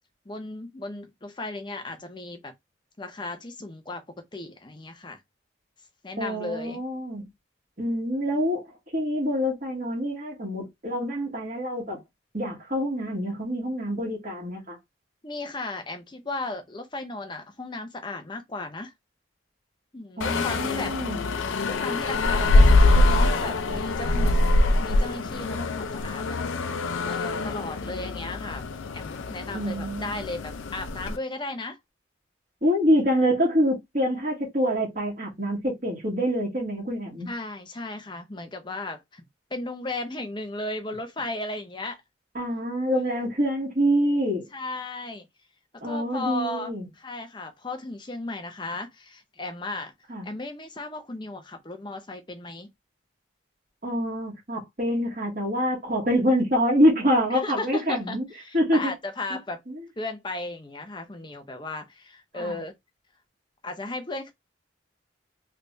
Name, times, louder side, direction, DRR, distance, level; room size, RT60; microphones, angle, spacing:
voice 1, 0.3-2.5 3.0-4.0 4.3-5.2 6.0-6.8 15.2-18.9 19.9-21.0 21.7-24.5 24.8-28.7 28.9-31.8 37.2-39.2 39.5-42.0 44.5-45.3 45.8-49.9 50.2-52.7 57.4-59.6 60.0-62.7 63.6-64.3, left 2 dB, 25° left, 0.6 m, -35 dB
voice 2, 6.2-7.3 7.8-8.7 8.9-12.0 12.3-14.8 20.2-21.2 29.5-30.2 32.6-37.3 42.3-44.5 45.8-46.9 50.1-50.3 53.8-58.2 58.5-58.9 59.7-59.8 62.3-62.6, equal, 45° right, 1.6 m, -26 dB
sound 1, 20.2-31.2, left 2 dB, 90° left, 0.5 m, -23 dB
3.3 x 3.2 x 2.6 m
head